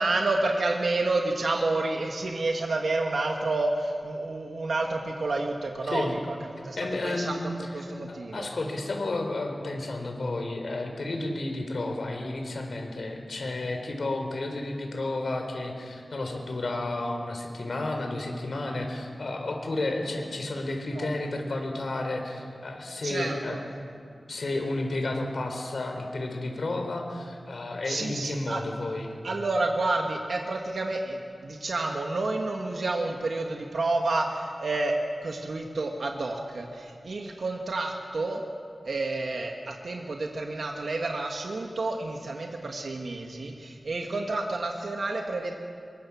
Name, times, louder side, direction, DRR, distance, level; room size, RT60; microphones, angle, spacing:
voice 1, 0.0-6.4 6.6-6.8 7.0-7.4 7.7-8.5 21.0-21.1 23.0-23.6 27.9-28.6 29.2-34.9 35.2-38.4 38.9-45.6, right 2 dB, 80° right, 1 dB, 1.9 m, -29 dB
voice 2, 5.8-6.1 6.8-7.4 7.7-7.9 8.3-23.6 23.9-24.0 24.3-29.1, left 2 dB, 70° left, 3 dB, 4.2 m, -32 dB
25.0 x 24.0 x 7.3 m, 2.3 s
wide cardioid pair, 90°, 0 cm